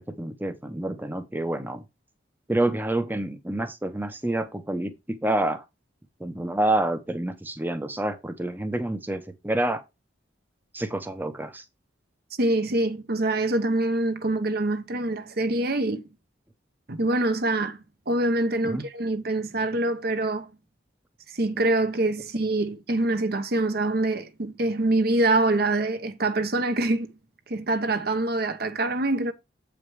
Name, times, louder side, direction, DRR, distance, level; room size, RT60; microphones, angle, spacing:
voice 1, 0.0-1.8 2.5-5.6 6.2-9.8 10.7-11.6 18.6-18.8, right 1 dB, 10° right, 0.7 m, -28 dB
voice 2, 12.4-16.0 16.9-20.5 21.3-27.1 27.5-29.3, right 2 dB, 55° right, 1.0 m, -25 dB
7.9 x 5.2 x 4.7 m
head